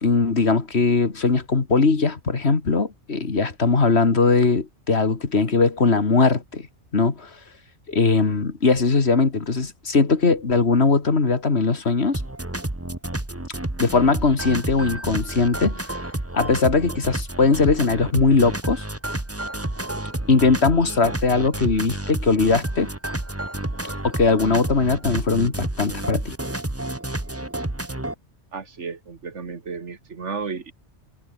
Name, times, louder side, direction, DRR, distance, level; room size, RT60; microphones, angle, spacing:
voice 1, 0.0-6.7 6.9-7.3 7.9-12.2 13.8-15.8 16.3-18.8 20.3-22.9 24.0-26.3, left 4 dB, 65° left, 2.4 m, -20 dB
sound 1, 12.1-28.1, right 1 dB, 10° right, 1.6 m, -30 dB
voice 2, 28.5-30.7, right 5 dB, 85° right, 2.2 m, -33 dB
omnidirectional pair, 1.2 m